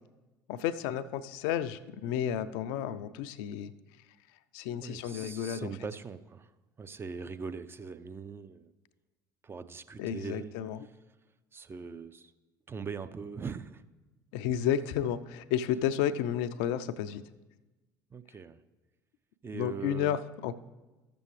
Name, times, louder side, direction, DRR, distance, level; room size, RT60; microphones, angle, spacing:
voice 1, 0.5-3.7 4.5-5.7 10.0-10.8 14.3-17.2 19.5-20.5, left 10 dB, 60° left, 13 dB, 0.4 m, -32 dB
voice 2, 4.8-6.5 6.8-8.7 9.4-10.5 10.8-11.0 11.5-12.3 12.7-13.8 18.1-18.6 19.4-20.2, right 5 dB, 20° right, 11 dB, 0.4 m, -41 dB
12.5 x 6.8 x 3.2 m, 1.1 s
figure-of-eight pair, 60°, 10 cm